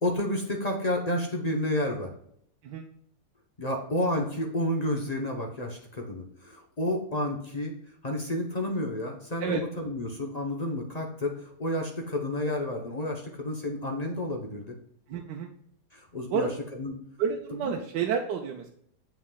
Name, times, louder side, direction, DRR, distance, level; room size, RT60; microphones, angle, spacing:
voice 1, 0.0-2.1 3.6-7.7 8.0-14.8 15.9-16.5 16.8-16.9 17.6-17.7, left 1 dB, 30° left, 1 dB, 0.8 m, -30 dB
voice 2, 15.1-15.5 16.3-16.6 17.2-18.7, right 7 dB, 85° right, 2 dB, 1.3 m, -30 dB
7.3 x 6.0 x 2.3 m, 0.68 s
omnidirectional pair, 1.8 m